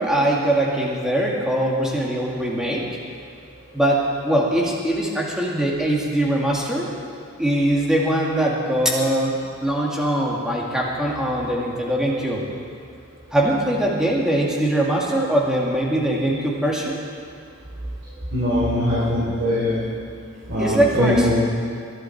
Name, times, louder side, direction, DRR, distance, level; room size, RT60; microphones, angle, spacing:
voice 1, 0.0-2.8 3.7-6.9 7.4-9.4 9.6-12.4 13.3-17.0 20.6-21.3, right 1 dB, 5° right, -3 dB, 2.1 m, -22 dB
voice 2, 18.3-19.8 20.5-21.3, left 1 dB, 50° right, -9 dB, 3.6 m, -21 dB
21.0 x 11.5 x 4.7 m, 2.2 s
head